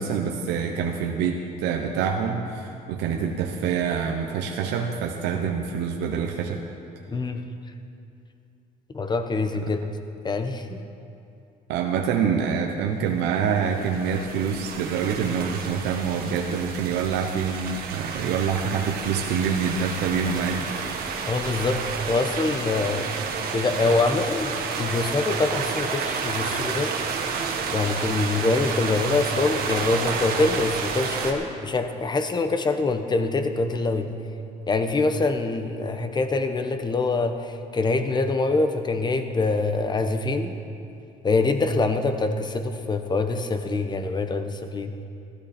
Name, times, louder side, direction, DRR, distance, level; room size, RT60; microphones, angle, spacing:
voice 1, 0.0-6.6 11.7-21.0, right 6 dB, 90° right, 2 dB, 1.0 m, -26 dB
voice 2, 7.1-7.4 8.9-9.8 10.2-10.8 21.3-23.1 23.5-27.0 27.7-34.1 34.7-40.5 41.2-44.9, left 3 dB, 25° left, 8 dB, 1.0 m, -25 dB
sound 1, 13.3-31.3, right 5 dB, 65° right, 1.8 m, -30 dB
16.0 x 13.5 x 4.4 m, 2.6 s
cardioid pair, 110°, 17 cm